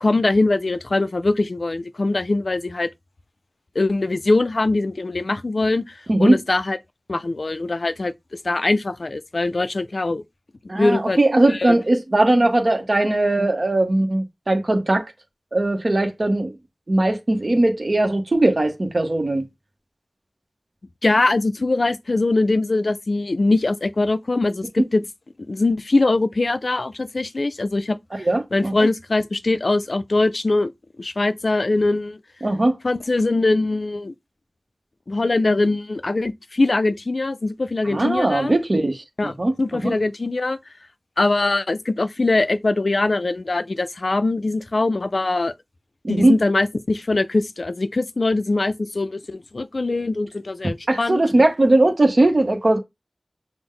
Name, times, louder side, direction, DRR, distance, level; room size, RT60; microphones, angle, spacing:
voice 1, 0.0-2.9 3.8-6.8 7.1-8.1 8.4-10.2 10.8-11.2 11.5-11.8 21.0-25.0 25.5-30.7 31.0-32.2 32.8-34.1 35.1-38.5 39.2-40.6 41.2-45.5 46.1-51.2, left 2 dB, 70° left, 0.3 m, -22 dB
voice 2, 10.7-15.0 15.5-16.5 16.9-19.5 28.3-28.7 32.4-32.8 37.9-39.5 39.8-39.9 46.0-46.4 50.9-52.8, right 2 dB, 55° right, 0.9 m, -19 dB
6.0 x 2.1 x 3.7 m
wide cardioid pair, 45°, 0 cm